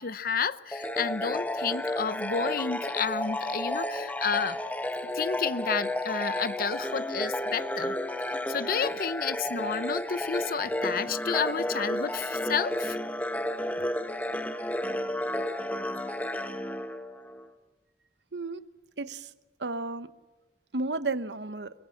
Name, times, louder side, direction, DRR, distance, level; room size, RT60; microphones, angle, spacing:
voice 1, 0.0-4.6 5.1-8.0 8.5-13.0, left 6 dB, 55° left, 15 dB, 0.7 m, -31 dB
sound 1, 0.7-17.5, left 1 dB, 10° left, 1.3 m, -32 dB
voice 2, 18.3-18.7 19.0-19.3 19.6-20.1 20.7-21.7, right 3 dB, 75° right, 13 dB, 1.0 m, -32 dB
24.0 x 23.0 x 7.2 m, 1.1 s
head